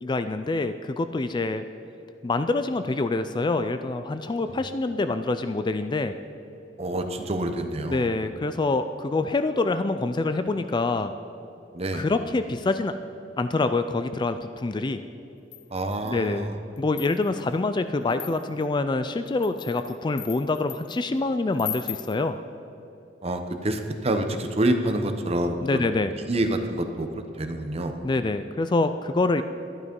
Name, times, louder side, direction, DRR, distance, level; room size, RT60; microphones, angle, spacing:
voice 1, 0.0-1.6 2.2-6.1 7.9-11.1 11.9-13.0 13.4-15.0 16.1-16.5 16.8-22.4 25.6-26.1 28.0-29.4, left 3 dB, 25° left, 10 dB, 0.4 m, -26 dB
voice 2, 6.8-8.1 11.7-12.1 15.7-16.6 23.2-25.9 26.2-28.0, right 1 dB, 35° right, 6 dB, 0.9 m, -27 dB
sound 1, 15.5-16.3 16.8-17.5 18.1-18.7 19.3-21.0 21.6-22.2, left 11 dB, 70° left, 0.9 m, -38 dB
12.0 x 11.0 x 5.3 m, 2.8 s
head